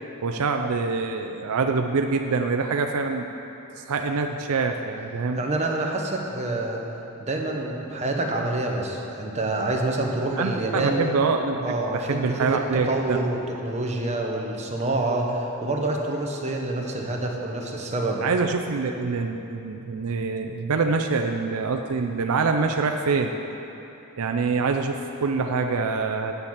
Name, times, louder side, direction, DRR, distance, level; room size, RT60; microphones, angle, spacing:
voice 1, 0.2-3.3 3.8-5.4 10.4-13.3 18.2-23.3 24.2-26.4, right 4 dB, 75° right, 4 dB, 0.5 m, -25 dB
voice 2, 5.4-6.8 7.2-11.0 11.6-18.2, right 2 dB, 30° right, 0 dB, 1.0 m, -27 dB
8.0 x 6.9 x 7.3 m, 3.0 s
head